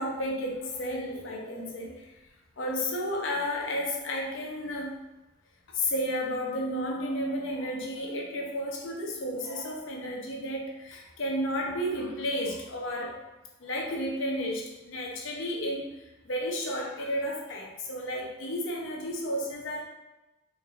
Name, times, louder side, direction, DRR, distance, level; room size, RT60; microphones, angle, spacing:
voice 1, 0.0-1.9 2.6-4.9 5.7-13.1 13.6-15.9 16.2-19.8, equal, 75° left, -1 dB, 0.7 m, -32 dB
4.2 x 3.2 x 2.5 m, 1.0 s
head